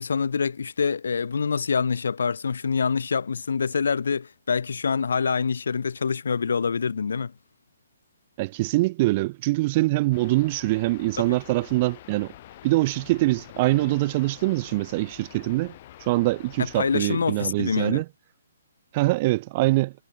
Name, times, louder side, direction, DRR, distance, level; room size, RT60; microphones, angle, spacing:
voice 1, 0.0-7.3 11.2-11.4 16.8-18.0, left 5 dB, 70° left, 0.6 m, -26 dB
voice 2, 8.4-12.3 12.6-15.7 16.0-18.0 18.9-19.9, right 20 dB, 35° right, 1.0 m, -24 dB
sound 1, 10.1-17.0, left 14 dB, 40° left, 6.2 m, -46 dB
hypercardioid pair, 140°, 0 cm